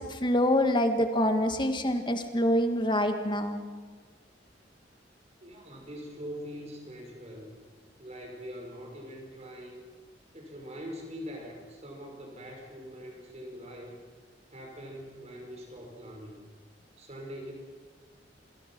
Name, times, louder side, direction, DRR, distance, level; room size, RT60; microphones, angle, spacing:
voice 1, 0.0-3.6, left 1 dB, 25° left, 6 dB, 1.9 m, -26 dB
voice 2, 5.4-7.5 8.0-9.9 10.3-14.0 14.5-16.5 17.0-17.5, equal, 35° right, 2 dB, 5.4 m, -43 dB
28.0 x 21.0 x 6.1 m, 1.5 s
head